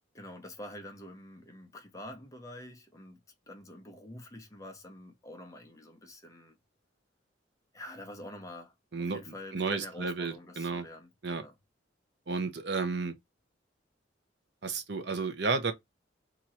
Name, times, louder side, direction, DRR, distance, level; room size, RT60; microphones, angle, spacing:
voice 1, 0.1-3.2 3.5-6.5 7.7-8.7 9.0-11.5, left 1 dB, 15° left, 0.9 m, -47 dB
voice 2, 8.9-10.9 11.2-11.4 12.3-13.1 14.6-15.7, right 4 dB, 60° right, 0.8 m, -32 dB
3.7 x 3.0 x 4.2 m
head